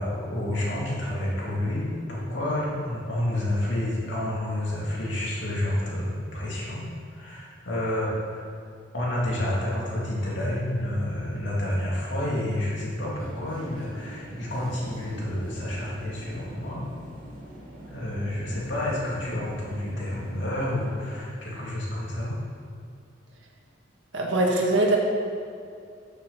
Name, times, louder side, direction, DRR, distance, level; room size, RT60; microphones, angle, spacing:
voice 1, 0.0-8.5 8.9-16.9 17.9-22.4, left 1 dB, 80° left, -6 dB, 2.7 m, -29 dB
sound 1, 13.2-21.2, right 1 dB, 45° right, 2.4 m, -44 dB
voice 2, 24.1-25.0, right 2 dB, 85° right, -1 dB, 1.7 m, -22 dB
13.0 x 6.7 x 4.1 m, 2.4 s
head